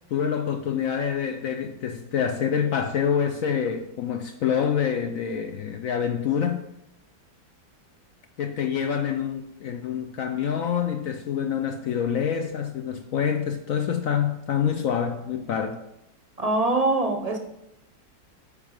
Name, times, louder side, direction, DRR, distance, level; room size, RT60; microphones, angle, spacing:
voice 1, 0.1-6.6 8.4-15.8, left 8 dB, 70° left, 0.8 m, -26 dB
voice 2, 16.4-17.4, right 2 dB, 35° right, 0.6 m, -23 dB
8.7 x 4.9 x 4.9 m
omnidirectional pair, 1.9 m